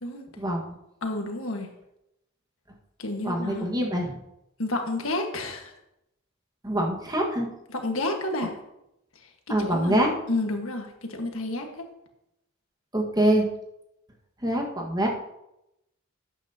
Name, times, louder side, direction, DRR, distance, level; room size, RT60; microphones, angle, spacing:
voice 1, 1.0-1.7 3.0-3.7 4.6-5.7 7.7-8.6 9.6-11.9, left 2 dB, 75° left, 3 dB, 1.6 m, -30 dB
voice 2, 3.2-4.2 6.6-7.5 9.5-10.1 12.9-13.4 14.4-15.1, right 1 dB, 20° right, 0 dB, 1.7 m, -24 dB
12.5 x 9.1 x 2.9 m, 0.84 s
head